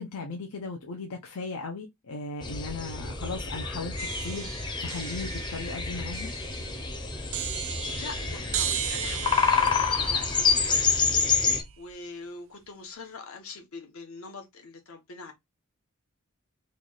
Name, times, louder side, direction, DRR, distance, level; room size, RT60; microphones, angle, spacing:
voice 1, 0.0-4.0 4.2-6.3, left 3 dB, 90° left, 0.7 m, -37 dB
sound 1, 2.4-11.6, left 5 dB, 20° left, 0.6 m, -28 dB
sound 2, 4.0-11.9, right 11 dB, 70° right, 0.5 m, -37 dB
voice 2, 7.7-10.9 11.8-15.3, left 4 dB, 70° left, 1.1 m, -43 dB
3.2 x 2.4 x 4.0 m
head